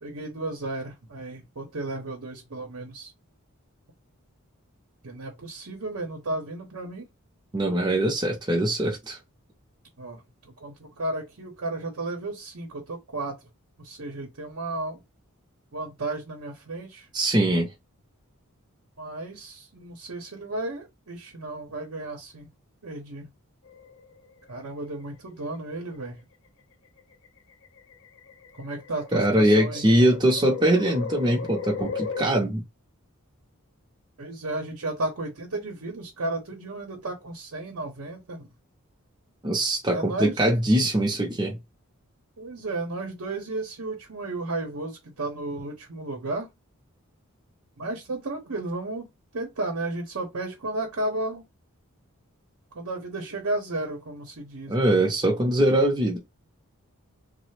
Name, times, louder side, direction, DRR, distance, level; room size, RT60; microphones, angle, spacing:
voice 1, 0.0-3.1 5.0-7.1 10.0-13.4 13.8-15.0 15.7-17.1 19.0-22.5 22.8-23.3 24.5-26.2 28.6-29.9 34.2-38.5 39.9-40.4 42.4-46.5 47.8-49.1 49.3-51.4 52.7-54.9, right 2 dB, 70° right, 0.8 m, -33 dB
voice 2, 7.5-9.2 17.1-17.7 29.1-32.6 39.4-41.6 54.7-56.2, right 1 dB, 20° right, 0.6 m, -22 dB
sound 1, 23.6-24.5 25.7-26.1 27.0-32.2, left 5 dB, 60° left, 0.6 m, -36 dB
3.3 x 2.0 x 3.2 m
head